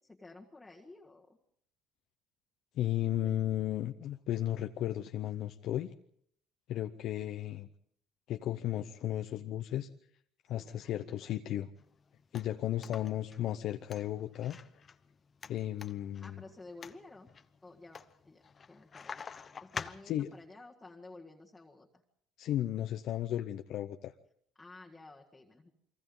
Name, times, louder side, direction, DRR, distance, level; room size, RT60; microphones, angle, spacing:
voice 1, 0.0-1.4 3.2-3.4 10.5-11.3 16.2-17.3 17.6-19.2 19.6-22.0 24.6-25.7, left 2 dB, 10° left, -2 dB, 1.7 m, -53 dB
voice 2, 2.8-5.9 6.7-7.7 8.3-9.9 10.5-11.7 12.3-14.8 15.5-16.3 20.1-20.3 22.4-24.1, left 12 dB, 60° left, 7 dB, 0.7 m, -34 dB
sound 1, 11.8-20.5, left 6 dB, 30° left, 0.9 m, -48 dB
29.5 x 23.0 x 3.9 m, 0.70 s
cardioid pair, 120°, 0 cm